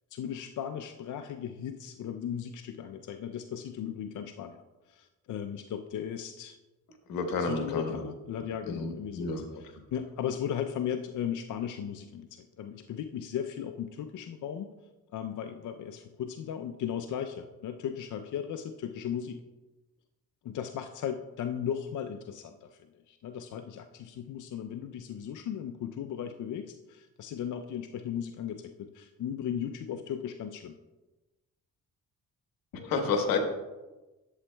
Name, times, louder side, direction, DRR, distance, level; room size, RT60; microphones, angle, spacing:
voice 1, 0.1-4.6 4.9-6.6 7.4-14.7 15.1-19.4 20.4-22.8 23.1-30.8, left 9 dB, 60° left, 7 dB, 0.5 m, -36 dB
voice 2, 7.1-8.1 8.7-9.4 32.7-33.4, left 4 dB, 85° left, 4 dB, 1.2 m, -30 dB
11.5 x 7.1 x 2.2 m, 1.1 s
cardioid pair, 65°, 34 cm